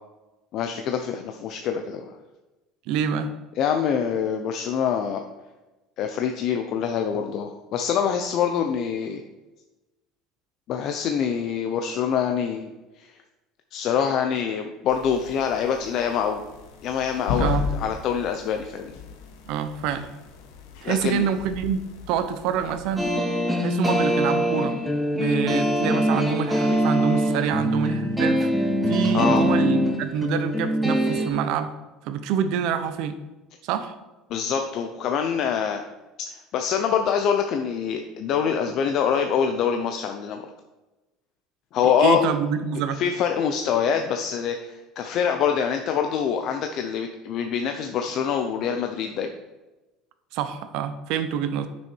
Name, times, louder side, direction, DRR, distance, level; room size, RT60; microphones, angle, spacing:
voice 1, 0.5-2.1 3.6-5.2 6.0-9.2 10.7-12.7 13.0-13.1 13.7-16.4 16.8-19.0 20.8-21.3 29.1-29.4 34.3-35.8 36.3-40.4 41.7-42.2 42.9-49.3, left 7 dB, 45° left, 5 dB, 0.6 m, -25 dB
voice 2, 2.9-3.3 17.4-17.7 19.5-20.1 20.8-21.8 22.1-23.1 23.6-24.7 25.1-31.7 32.0-33.2 33.6-33.9 41.8-43.0 50.3-51.7, right 8 dB, 60° right, 10 dB, 0.8 m, -26 dB
sound 1, 14.9-23.1, left 6 dB, 80° left, 1.3 m, -35 dB
sound 2, 23.0-31.3, equal, ahead, 1.2 m, -23 dB
10.5 x 6.3 x 4.5 m, 1.1 s
cardioid pair, 165°, 0 cm